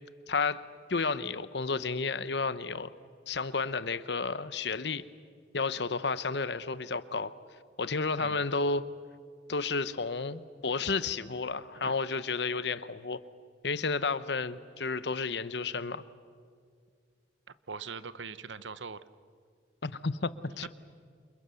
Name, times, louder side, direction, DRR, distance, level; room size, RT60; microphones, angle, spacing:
voice 1, 0.3-0.6 0.9-2.9 3.3-5.0 5.5-7.3 7.8-8.8 9.5-13.2 13.6-16.0 19.8-20.7, left 4 dB, 65° left, 15 dB, 0.9 m, -31 dB
voice 2, 17.7-19.0 20.6-20.7, right 5 dB, 90° right, 14 dB, 1.0 m, -41 dB
29.5 x 27.5 x 7.0 m, 2.1 s
head